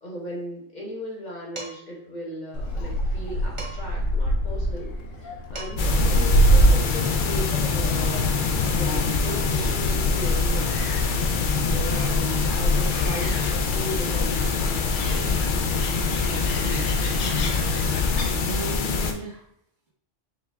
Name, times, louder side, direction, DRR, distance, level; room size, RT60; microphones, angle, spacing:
voice 1, 0.0-4.9 5.2-8.4 8.7-11.2 11.8-15.4, equal, 40° left, -3 dB, 1.1 m, -37 dB
Dishes pots and pans, 1.6-2.0 3.6-4.0 5.2-5.3 5.5-6.0, right 2 dB, 30° right, 0.8 m, -39 dB
Gull seagull, 2.5-18.3, equal, 85° left, 1.1 m, -26 dB
voice 2, 5.7-6.1 16.4-17.0 18.3-19.4, right 3 dB, 65° right, -4 dB, 1.6 m, -36 dB
sound 1, 5.8-19.1, left 4 dB, 60° left, 0.5 m, -24 dB
5.1 x 2.3 x 3.4 m, 0.69 s
omnidirectional pair, 1.3 m